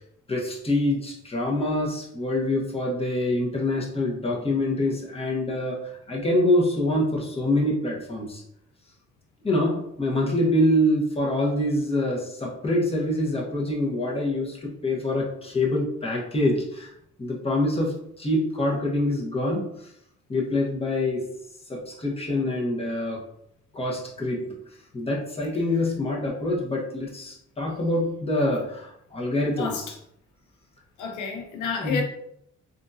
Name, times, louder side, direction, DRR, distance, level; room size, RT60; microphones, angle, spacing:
voice 1, 0.3-5.8 6.1-8.4 9.4-16.9 17.2-19.7 20.3-21.2 21.7-23.2 23.7-24.4 24.9-29.9 31.8-32.0, left 1 dB, 20° left, -3 dB, 1.0 m, -25 dB
voice 2, 31.0-32.0, left 5 dB, 80° left, 3 dB, 0.6 m, -30 dB
3.6 x 2.6 x 2.6 m, 0.73 s
cardioid pair, 90°, 30 cm